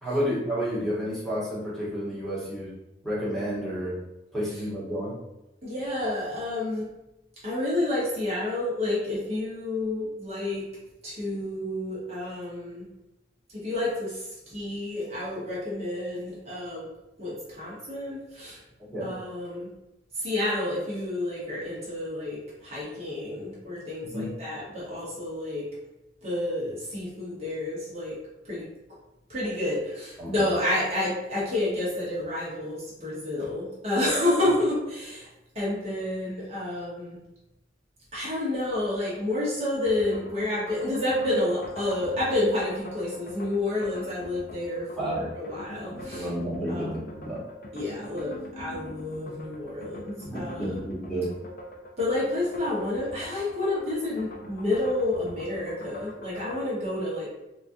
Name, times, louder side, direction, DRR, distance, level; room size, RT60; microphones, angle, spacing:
voice 1, 0.0-2.7 3.0-3.9 4.3-5.2 18.9-19.1 24.0-24.3 30.2-30.4 45.0-45.2 46.1-47.4 50.2-51.3, equal, ahead, -9 dB, 1.1 m, -30 dB
voice 2, 5.6-6.9 7.4-10.7 11.0-12.9 13.5-14.2 14.5-16.9 17.2-18.6 19.0-19.7 20.2-22.4 22.6-25.7 26.2-28.2 28.4-28.7 29.3-35.3 35.5-37.2 38.1-46.2 46.7-46.9 47.7-50.8 52.0-57.3, left 1 dB, 35° right, -7 dB, 1.0 m, -29 dB
sound 1, 39.9-56.7, left 1 dB, 50° left, 0.5 m, -43 dB
4.2 x 2.3 x 2.6 m, 0.95 s
head